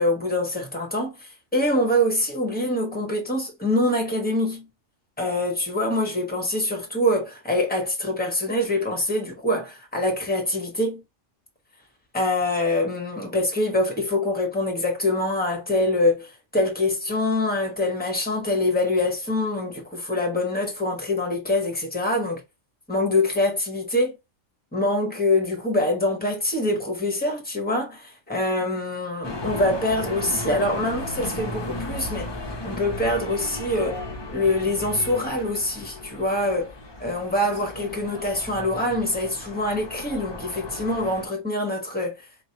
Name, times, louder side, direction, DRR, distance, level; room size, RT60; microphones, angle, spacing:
voice 1, 0.0-4.7 5.2-11.0 12.1-22.4 22.9-24.2 24.7-32.3 32.6-34.0 34.3-36.7 37.0-42.2, left 1 dB, 10° left, 1.2 m, -24 dB
sound 1, 29.2-41.3, left 1 dB, 25° left, 0.8 m, -35 dB
4.5 x 3.0 x 2.9 m
omnidirectional pair, 1.3 m